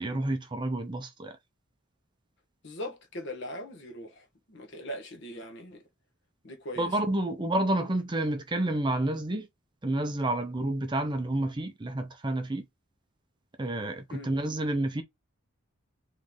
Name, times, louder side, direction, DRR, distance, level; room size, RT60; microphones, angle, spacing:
voice 1, 0.0-1.4 6.8-9.5 9.8-12.6 13.6-15.0, right 1 dB, 20° right, 0.5 m, -29 dB
voice 2, 2.6-5.8 6.4-7.0 14.1-14.3, left 1 dB, 55° left, 1.1 m, -40 dB
3.7 x 3.2 x 3.5 m
head